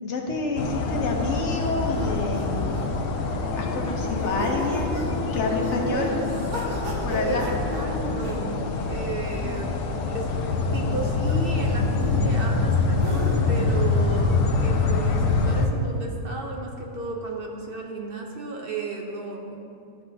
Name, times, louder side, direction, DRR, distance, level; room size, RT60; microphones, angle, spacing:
voice 1, 0.0-2.9 3.6-5.0 5.3-6.1 7.0-7.5 9.4-9.8, left 3 dB, 70° left, 1 dB, 1.2 m, -29 dB
sound 1, 0.6-15.7, left 3 dB, 85° left, 1.0 m, -25 dB
sound 2, 1.6-13.6, right 1 dB, 70° right, 1.5 m, -37 dB
voice 2, 5.8-6.3 7.0-9.8 10.1-10.4 10.7-19.6, right 3 dB, 50° right, 0 dB, 0.9 m, -33 dB
12.0 x 5.9 x 2.7 m, 2.5 s
omnidirectional pair, 1.3 m